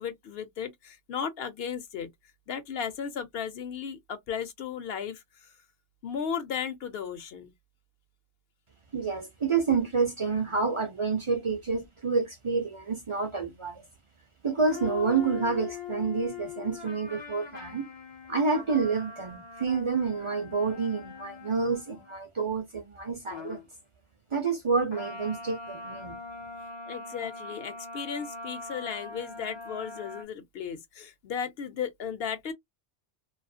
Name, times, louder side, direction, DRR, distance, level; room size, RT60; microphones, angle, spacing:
voice 1, 0.0-2.1 2.5-5.2 6.0-7.5 26.9-32.5, left 7 dB, 65° left, 0.7 m, -35 dB
voice 2, 8.9-13.8 14.4-17.9 18.3-23.6 24.3-26.1, right 4 dB, 40° right, 0.4 m, -28 dB
sound 1, 14.7-22.2 23.3-23.7 24.9-30.2, left 5 dB, 35° left, 0.4 m, -42 dB
2.4 x 2.3 x 2.6 m
omnidirectional pair, 1.2 m